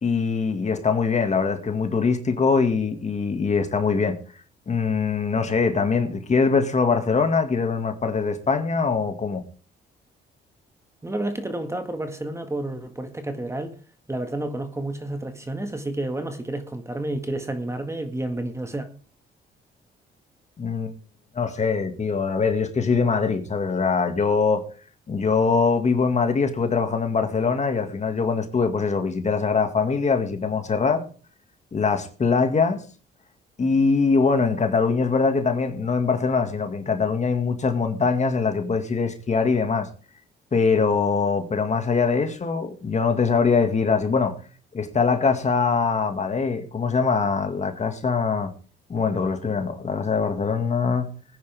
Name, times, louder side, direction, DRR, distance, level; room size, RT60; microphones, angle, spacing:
voice 1, 0.0-4.2 4.7-9.4 20.6-20.9 21.3-24.7 25.1-31.0 31.7-32.8 33.6-39.9 40.5-44.3 44.7-48.5 48.9-51.1, left 5 dB, 35° left, 2.1 m, -22 dB
voice 2, 11.0-13.7 14.1-18.9, right 1 dB, 15° right, 1.8 m, -30 dB
19.5 x 10.0 x 3.6 m
cardioid pair, 90°, 20 cm